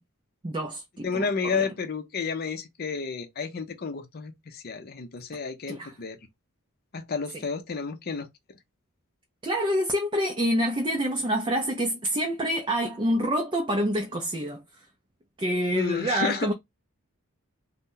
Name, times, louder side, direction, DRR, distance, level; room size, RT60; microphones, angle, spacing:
voice 1, 0.4-1.7 5.7-5.9 9.4-14.6 15.4-16.5, equal, 25° right, 0.4 m, -27 dB
voice 2, 1.0-6.2 6.9-8.3 15.8-16.5, left 5 dB, 45° left, 0.5 m, -31 dB
2.7 x 2.1 x 3.6 m
head